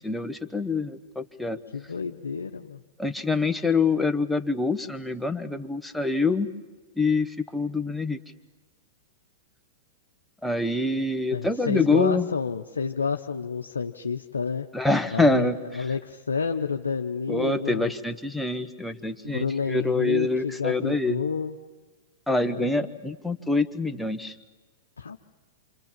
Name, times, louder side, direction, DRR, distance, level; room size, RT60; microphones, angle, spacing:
voice 1, 0.0-1.6 3.0-6.5 7.0-8.2 10.4-12.3 14.7-15.6 17.3-21.2 22.3-24.3, left 3 dB, 5° left, 7 dB, 1.3 m, -25 dB
voice 2, 1.7-2.8 11.3-14.7 15.1-17.9 19.2-21.6 22.4-23.0 25.0-25.2, left 5 dB, 90° left, 3 dB, 0.8 m, -30 dB
27.0 x 26.5 x 7.6 m, 1.3 s
hypercardioid pair, 110°, 0 cm